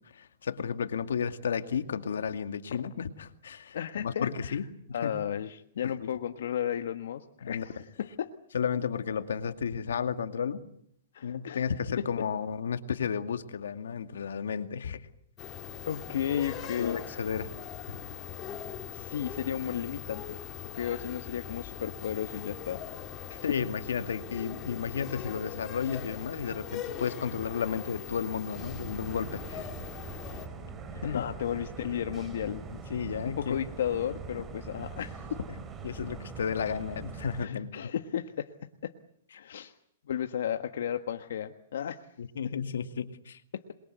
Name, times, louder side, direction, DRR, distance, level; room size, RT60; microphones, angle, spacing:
voice 1, 0.1-5.1 5.8-6.1 7.4-7.7 8.5-10.6 11.2-15.1 16.8-17.5 17.9-18.0 23.4-29.7 31.0-31.2 32.7-33.6 35.8-37.7 42.2-43.4, left 7 dB, 85° left, 8 dB, 2.3 m, -33 dB
voice 2, 3.7-4.6 4.9-8.3 11.1-11.7 12.0-12.2 15.9-17.0 18.9-22.8 23.3-23.5 31.0-32.6 33.4-35.4 37.4-38.5 38.8-38.9 39.3-39.7 40.1-42.0 43.5-43.7, left 9 dB, 70° left, 7 dB, 1.5 m, -34 dB
sound 1, 15.4-30.5, left 9 dB, 25° left, 2.3 m, -41 dB
sound 2, 28.5-37.5, right 5 dB, 15° right, 2.8 m, -42 dB
27.5 x 22.5 x 8.2 m, 0.69 s
hypercardioid pair, 155°, 0 cm